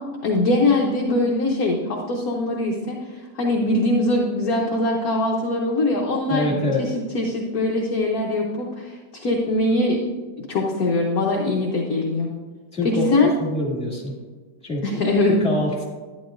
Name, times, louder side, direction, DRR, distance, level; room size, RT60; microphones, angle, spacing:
voice 1, 0.2-3.0 3.3-10.0 10.5-12.3 12.8-13.3 14.8-15.4, left 2 dB, 60° left, -1 dB, 1.0 m, -22 dB
voice 2, 6.3-6.8 12.7-14.1 14.6-15.0 15.4-15.8, left 2 dB, 5° left, -5 dB, 2.0 m, -25 dB
11.0 x 9.6 x 2.6 m, 1.4 s
omnidirectional pair, 2.4 m